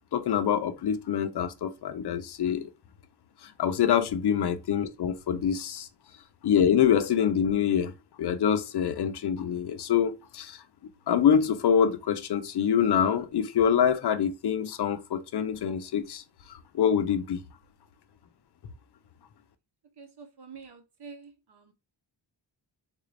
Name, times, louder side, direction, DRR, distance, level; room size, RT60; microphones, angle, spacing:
voice 1, 0.1-2.7 3.4-5.8 6.4-7.9 8.2-10.6 11.1-16.2 16.7-17.4, left 8 dB, 60° left, 0.5 m, -25 dB
voice 2, 20.0-21.7, right 5 dB, 55° right, 0.9 m, -47 dB
3.7 x 2.5 x 3.2 m
wide cardioid pair, 165°, 46 cm